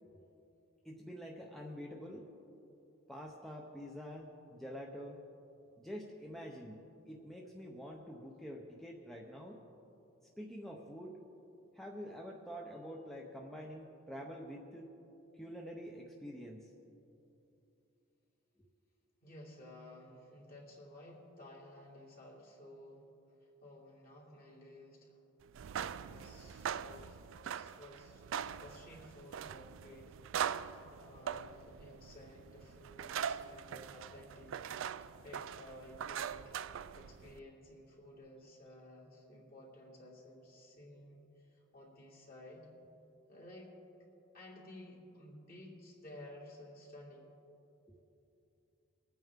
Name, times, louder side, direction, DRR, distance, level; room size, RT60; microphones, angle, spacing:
voice 1, 0.8-2.3 3.1-5.2 5.8-9.6 10.4-11.2 11.8-14.9 15.4-16.7, equal, ahead, -1 dB, 0.7 m, -47 dB
voice 2, 19.2-23.1 23.4-25.2 26.0-27.2 27.5-30.2 30.7-34.6 35.0-42.7 43.3-43.8 44.3-47.3, left 1 dB, 45° left, -4 dB, 2.9 m, -54 dB
sound 1, 25.5-37.4, right 8 dB, 65° right, 0.4 m, -42 dB
22.5 x 9.1 x 3.6 m, 2.9 s
head